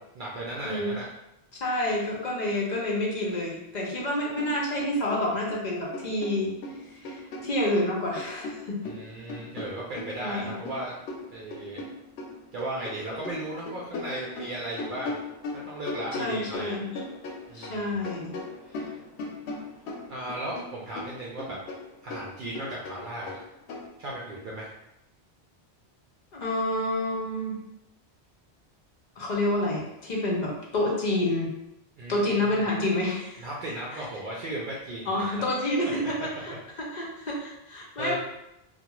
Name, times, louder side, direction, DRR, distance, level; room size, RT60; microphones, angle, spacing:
voice 1, 0.2-1.1 8.8-11.0 11.3-11.8 12.5-15.2 15.5-16.7 17.5-18.0 20.1-21.6 22.0-23.4 24.0-24.7 32.0-32.6 33.4-35.2 35.7-36.3 38.0-38.2, right 1 dB, 60° right, -5 dB, 0.6 m, -36 dB
voice 2, 1.6-6.5 7.0-8.9 10.2-10.5 16.2-17.0 17.5-18.3 26.3-27.6 29.2-31.5 32.1-33.5 33.9-34.0 35.1-38.2, left 1 dB, 50° left, -3 dB, 0.7 m, -28 dB
sound 1, 4.0-4.1 4.4-5.6 5.9-7.9 8.2-12.9 13.2-17.8 18.0-20.7 21.0-23.9, left 3 dB, 80° left, 0.8 m, -38 dB
2.3 x 2.2 x 2.9 m, 0.85 s
omnidirectional pair, 1.1 m